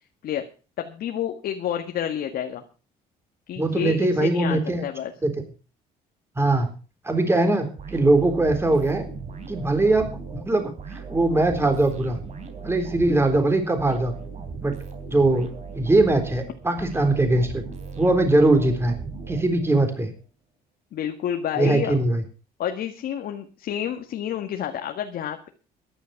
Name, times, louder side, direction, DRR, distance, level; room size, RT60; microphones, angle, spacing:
voice 1, 0.8-2.6 3.5-5.1 20.9-21.9 22.6-25.5, left 10 dB, 65° left, 5 dB, 1.8 m, -29 dB
voice 2, 3.6-4.9 5.2-5.3 6.4-6.7 7.0-9.1 9.5-12.2 12.6-14.1 14.6-14.7 15.1-15.5 15.7-17.6 18.0-19.0 19.3-20.1 21.6-22.2, right 2 dB, 15° right, 7 dB, 3.8 m, -21 dB
sound 1, 7.8-20.0, right 5 dB, 45° right, 3.7 m, -38 dB
14.0 x 11.0 x 5.9 m, 0.36 s
cardioid pair, 110°, 17 cm